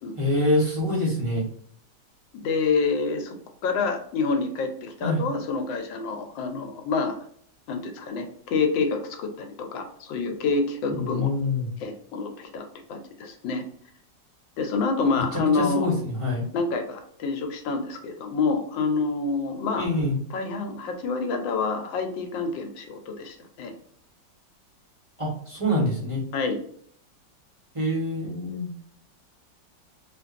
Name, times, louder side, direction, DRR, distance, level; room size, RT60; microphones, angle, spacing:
voice 1, 0.2-1.5 5.0-5.2 10.9-11.7 15.3-16.4 19.7-20.2 25.2-26.2 27.7-28.7, left 1 dB, 20° right, -5 dB, 1.1 m, -25 dB
voice 2, 2.3-3.3 3.6-7.1 7.7-11.3 11.8-13.6 14.6-15.9 16.5-19.9 20.3-23.7 26.3-26.6, left 4 dB, 85° left, 4 dB, 1.4 m, -27 dB
4.4 x 2.5 x 2.5 m, 0.62 s
omnidirectional pair, 2.0 m